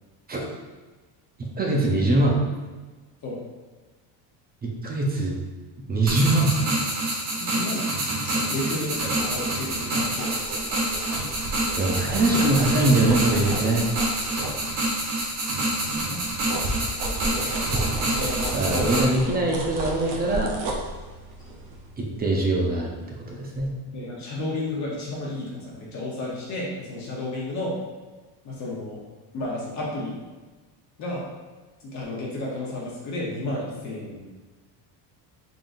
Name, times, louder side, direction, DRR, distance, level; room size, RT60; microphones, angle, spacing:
voice 1, 1.4-2.4 4.6-5.4 5.9-6.5 11.8-13.8 17.4-17.8 18.1-20.5 22.0-23.0 23.3-23.7, right 2 dB, 20° right, -1 dB, 0.5 m, -23 dB
sound 1, 6.1-19.0, right 1 dB, 75° right, 1.4 m, -27 dB
voice 2, 7.3-10.3 15.8-16.6 17.2-19.1 23.9-27.8 28.4-29.0 29.3-30.1 31.0-31.2 31.8-34.2, left 2 dB, 40° left, -4 dB, 0.9 m, -32 dB
sound 2, 9.2-15.2 15.6-23.2 23.5-23.7, right 1 dB, 60° right, 0.9 m, -34 dB
3.8 x 3.7 x 2.6 m, 1.3 s
cardioid pair, 135°, 43 cm